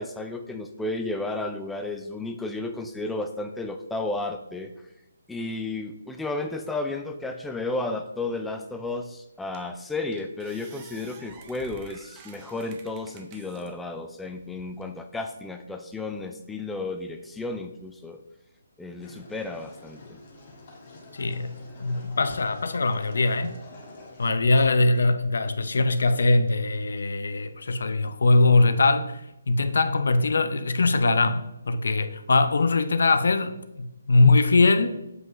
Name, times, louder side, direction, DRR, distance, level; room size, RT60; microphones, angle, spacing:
voice 1, 0.0-4.7 5.3-18.2 18.8-20.2, left 2 dB, 5° left, 0.4 m, -33 dB
sound 1, 8.9-9.0 9.5-9.8 10.1-13.7 14.2-14.9, right 5 dB, 25° right, 0.7 m, -50 dB
sound 2, 19.0-24.3, left 2 dB, 35° left, 1.7 m, -47 dB
voice 2, 21.1-23.5 24.2-29.2 29.5-35.0, left 3 dB, 70° left, 0.6 m, -22 dB
7.8 x 5.3 x 3.0 m
hypercardioid pair, 155°, 0 cm